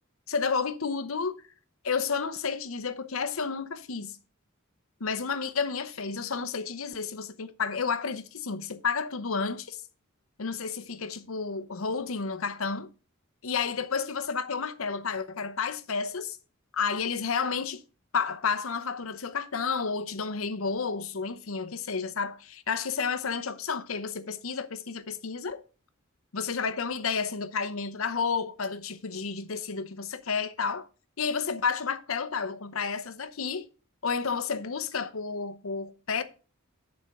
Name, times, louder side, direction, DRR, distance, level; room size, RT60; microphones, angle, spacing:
voice 1, 0.3-1.4 1.8-4.2 5.0-9.8 10.4-12.9 13.4-16.4 16.7-17.8 18.1-25.6 26.3-30.9 31.2-33.7 34.0-36.2, left 5 dB, 70° left, 0.8 m, -31 dB
10.5 x 4.5 x 5.5 m
head